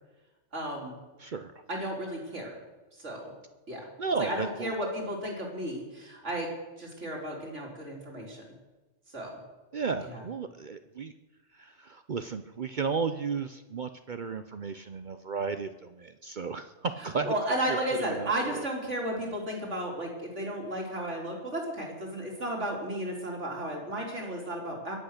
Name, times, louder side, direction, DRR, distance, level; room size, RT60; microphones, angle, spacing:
voice 1, 0.5-1.0 1.7-2.5 3.0-3.3 3.7-3.8 4.2-6.5 6.8-8.4 9.1-9.4 10.0-10.2 17.2-25.0, right 1 dB, 75° right, -1 dB, 4.1 m, -33 dB
voice 2, 1.2-1.5 4.0-4.7 9.7-11.1 11.6-17.3 17.7-18.6, right 5 dB, 50° right, 9 dB, 0.7 m, -34 dB
22.5 x 8.5 x 6.6 m, 1.1 s
omnidirectional pair, 1.2 m